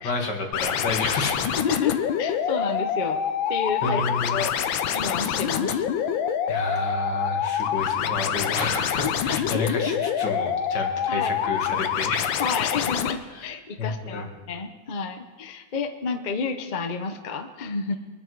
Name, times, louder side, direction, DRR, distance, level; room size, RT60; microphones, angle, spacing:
voice 1, 0.0-1.6 3.8-4.4 5.7-5.8 6.5-12.3 13.3-13.5 13.8-14.3, left 3 dB, 65° left, 2 dB, 2.4 m, -30 dB
sound 1, 0.5-13.1, left 8 dB, 85° left, 1.5 m, -26 dB
voice 2, 1.5-3.2 3.5-4.0 4.3-5.8 9.0-9.4 10.7-11.3 12.4-18.0, left 5 dB, 40° left, 6 dB, 0.7 m, -30 dB
24.0 x 10.0 x 4.7 m, 1.3 s
omnidirectional pair, 2.0 m